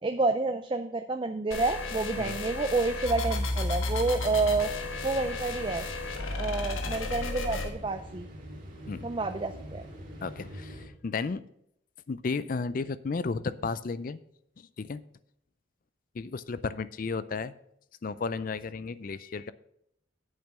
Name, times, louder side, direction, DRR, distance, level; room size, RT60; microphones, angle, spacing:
voice 1, 0.0-4.7 5.0-5.9 6.4-8.3 9.0-9.8, right 3 dB, 25° right, 8 dB, 0.4 m, -29 dB
sound 1, 1.5-7.7, left 2 dB, 85° left, 1.3 m, -33 dB
sound 2, 4.1-10.9, equal, 40° right, 2.1 m, -45 dB
voice 2, 10.2-10.8 11.0-11.4 12.1-14.2 14.8-15.0 16.2-17.5 18.0-19.5, left 4 dB, 45° left, 15 dB, 0.4 m, -33 dB
8.9 x 7.0 x 5.4 m, 0.74 s
head